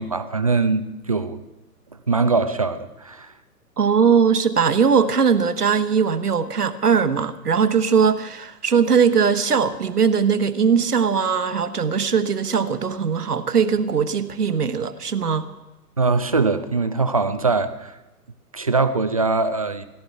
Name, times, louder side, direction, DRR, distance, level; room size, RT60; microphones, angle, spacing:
voice 1, 0.0-1.4 2.1-3.3 16.0-18.0 18.5-19.9, right 3 dB, 25° right, 11 dB, 0.4 m, -22 dB
voice 2, 3.8-15.5, right 6 dB, 75° right, 11 dB, 1.3 m, -20 dB
17.5 x 12.0 x 5.9 m, 1.0 s
figure-of-eight pair, 125°, 47 cm